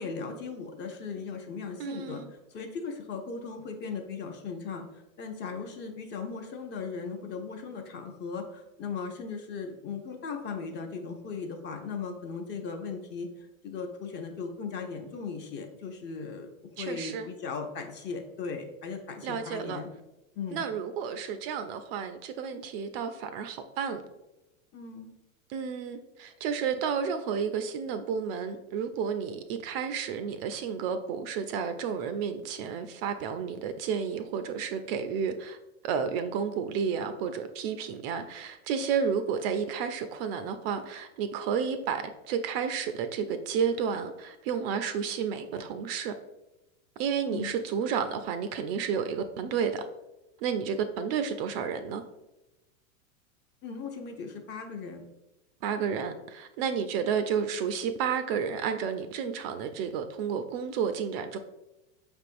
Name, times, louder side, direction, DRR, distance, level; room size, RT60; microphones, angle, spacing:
voice 1, 0.0-2.2 2.5-16.5 16.8-19.9 20.4-20.7 24.7-25.1 47.3-47.5 53.6-55.1, left 5 dB, 25° left, 4 dB, 0.5 m, -38 dB
voice 2, 1.8-2.3 16.8-17.3 19.2-19.8 20.5-24.0 25.5-35.6 35.8-46.1 47.0-49.8 50.4-52.0 55.6-61.4, right 7 dB, 45° right, 9 dB, 0.4 m, -31 dB
5.3 x 3.4 x 2.5 m, 0.95 s
hypercardioid pair, 115°, 41 cm